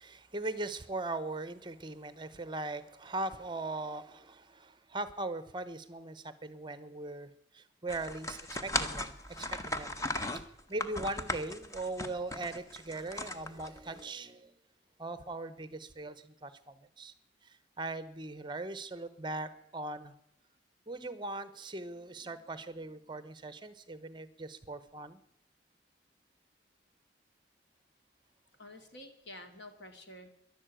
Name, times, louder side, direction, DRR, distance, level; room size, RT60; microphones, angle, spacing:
voice 1, 0.0-10.0 10.7-14.5 15.0-17.1 17.4-20.1 20.9-25.2, right 2 dB, 25° right, 13 dB, 0.8 m, -40 dB
sound 1, 7.9-14.0, left 1 dB, 15° left, 0.9 m, -37 dB
voice 2, 28.6-30.3, left 1 dB, 75° left, 6 dB, 2.3 m, -49 dB
11.5 x 11.0 x 9.0 m, 0.75 s
head